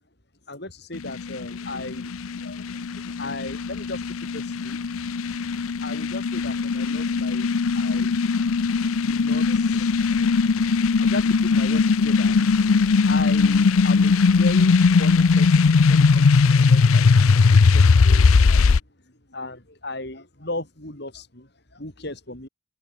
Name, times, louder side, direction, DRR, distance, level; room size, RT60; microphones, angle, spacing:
voice 1, 0.5-4.8 5.8-8.4 9.0-10.5 11.0-18.8 19.3-22.5, left 2 dB, 50° left, 4.3 m, -37 dB
sound 1, 1.0-18.8, left 4 dB, 85° left, 0.6 m, -19 dB
open air
head